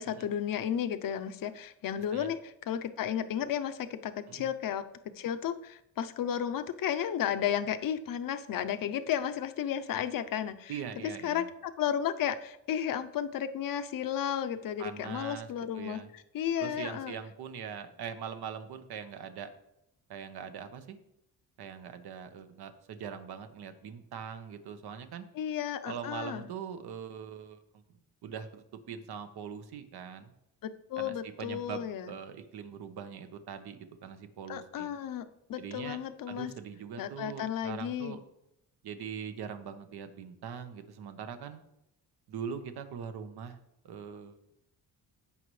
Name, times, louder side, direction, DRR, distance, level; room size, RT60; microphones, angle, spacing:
voice 1, 0.0-4.8 5.2-10.7 11.2-17.1 25.3-26.5 30.6-32.1 34.5-35.2 35.5-36.5 37.0-38.2, left 9 dB, 60° left, 10 dB, 0.7 m, -33 dB
voice 2, 10.7-11.5 14.8-15.5 15.7-16.1 16.6-19.5 20.1-21.0 21.6-25.3 25.9-27.6 28.2-30.3 31.0-34.9 35.6-36.0 36.3-38.2 38.8-41.6 42.3-43.6 43.8-44.4, right 7 dB, 75° right, 8 dB, 1.2 m, -42 dB
16.0 x 5.5 x 3.2 m, 0.81 s
cardioid pair, 105°, 39 cm